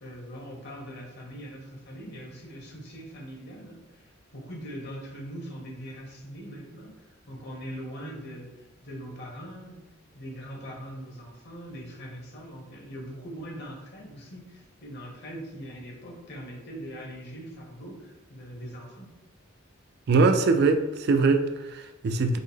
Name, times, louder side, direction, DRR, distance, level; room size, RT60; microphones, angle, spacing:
voice 1, 0.0-9.8 10.1-19.1, equal, 55° left, -1 dB, 1.0 m, -41 dB
voice 2, 20.1-22.4, right 3 dB, 55° right, 7 dB, 0.3 m, -22 dB
5.3 x 2.1 x 3.4 m, 1.0 s
head